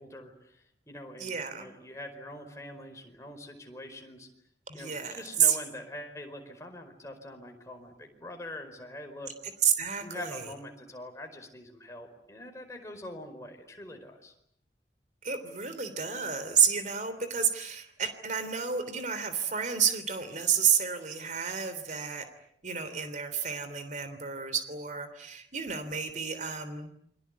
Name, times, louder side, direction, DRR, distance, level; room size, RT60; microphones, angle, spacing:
voice 1, 0.0-4.3 4.7-9.3 10.0-14.3, left 1 dB, 15° left, 4 dB, 4.8 m, -44 dB
voice 2, 1.2-1.7 4.7-5.6 9.6-10.5 15.2-22.2 22.6-26.9, right 7 dB, 45° right, 11 dB, 3.3 m, -30 dB
29.0 x 24.0 x 8.3 m, 0.70 s
head